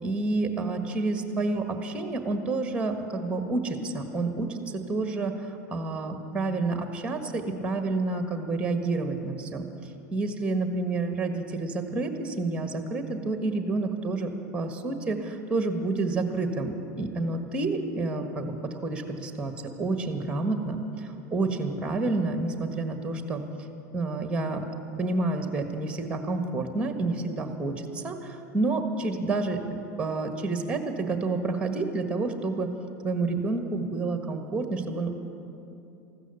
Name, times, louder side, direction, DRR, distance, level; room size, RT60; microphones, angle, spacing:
voice 1, 0.0-4.6 4.9-9.7 10.1-23.4 23.9-24.6 25.0-29.6 30.0-32.7 33.0-35.1, right 3 dB, 10° right, 6 dB, 1.5 m, -29 dB
15.0 x 13.0 x 6.9 m, 2.8 s
hypercardioid pair, 90°, 9 cm